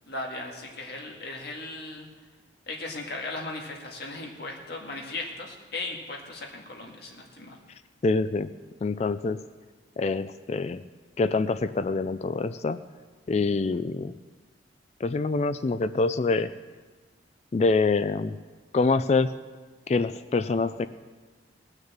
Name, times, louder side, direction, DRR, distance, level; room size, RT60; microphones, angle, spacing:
voice 1, 0.1-2.1 2.7-7.6, left 2 dB, 55° left, 0 dB, 1.9 m, -37 dB
voice 2, 8.0-8.5 8.8-9.4 10.0-10.8 11.2-12.8 13.3-14.1 15.0-16.5 17.5-18.3 18.7-19.3 19.9-20.9, left 3 dB, 35° left, 13 dB, 0.3 m, -25 dB
18.5 x 6.6 x 7.3 m, 1.4 s
head